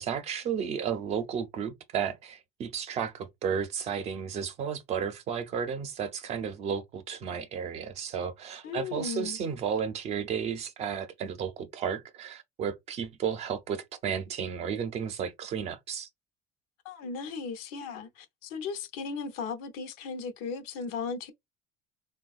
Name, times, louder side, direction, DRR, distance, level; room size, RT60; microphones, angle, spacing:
voice 1, 0.0-16.1, right 7 dB, 45° right, 0.6 m, -33 dB
voice 2, 8.6-9.4 16.8-21.3, left 5 dB, 85° left, 0.7 m, -36 dB
3.4 x 2.2 x 2.4 m
cardioid pair, 135°, 15 cm